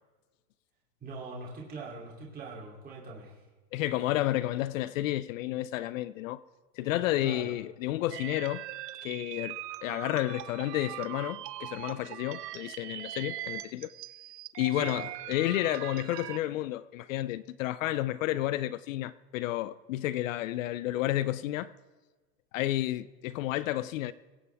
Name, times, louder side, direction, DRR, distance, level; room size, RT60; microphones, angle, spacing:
voice 1, 1.0-3.4 7.2-7.5 14.7-14.9, right 3 dB, 20° right, 2.9 m, -42 dB
voice 2, 3.7-6.4 6.8-8.6 9.0-13.9 14.6-21.7 22.5-24.1, left 15 dB, 55° left, 0.5 m, -31 dB
sound 1, 8.1-16.4, right 14 dB, 85° right, 0.8 m, -41 dB
22.0 x 8.3 x 3.4 m
supercardioid pair, 135°, 47 cm